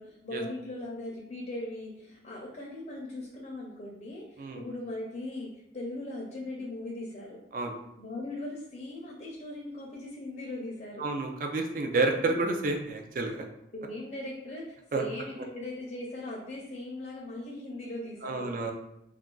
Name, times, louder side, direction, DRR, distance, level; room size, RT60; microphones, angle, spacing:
voice 1, 0.0-7.4 8.0-11.1 12.2-12.3 13.7-18.7, left 1 dB, 40° left, -3 dB, 0.5 m, -39 dB
voice 2, 11.0-13.5 14.9-15.0 18.2-18.7, right 3 dB, 50° right, 3 dB, 0.4 m, -29 dB
2.4 x 2.2 x 3.7 m, 0.83 s
head